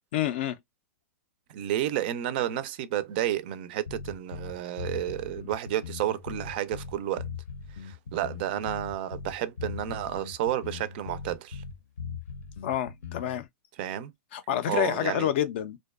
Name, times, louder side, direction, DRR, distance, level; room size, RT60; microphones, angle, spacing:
voice 1, 0.1-0.6 12.6-13.5 14.3-15.8, left 11 dB, 45° left, 0.3 m, -28 dB
voice 2, 1.5-7.2 7.8-11.6 13.8-14.1 14.7-15.3, right 12 dB, 40° right, 0.4 m, -31 dB
sound 1, 3.9-13.4, left 6 dB, 85° left, 0.6 m, -40 dB
2.5 x 2.2 x 2.3 m
hypercardioid pair, 160°, 8 cm